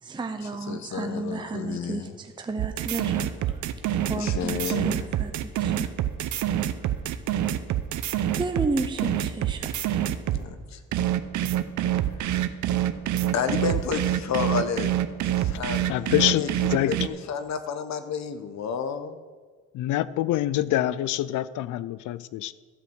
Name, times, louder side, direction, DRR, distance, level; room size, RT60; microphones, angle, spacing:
voice 1, 0.0-3.6 4.1-5.3 5.6-5.9 6.8-7.0 8.4-10.0, right 3 dB, 15° right, 6 dB, 0.7 m, -32 dB
voice 2, 0.7-2.1 4.1-5.1 10.3-10.8 13.3-14.9 15.4-19.2, left 7 dB, 65° left, 10 dB, 1.0 m, -31 dB
sound 1, 2.6-10.5 10.9-17.1, right 11 dB, 75° right, 0.7 m, -26 dB
voice 3, 15.8-16.4 16.7-17.0 19.7-22.5, left 14 dB, 80° left, 18 dB, 0.5 m, -25 dB
12.5 x 5.1 x 7.9 m, 1.5 s
cardioid pair, 90°, 30 cm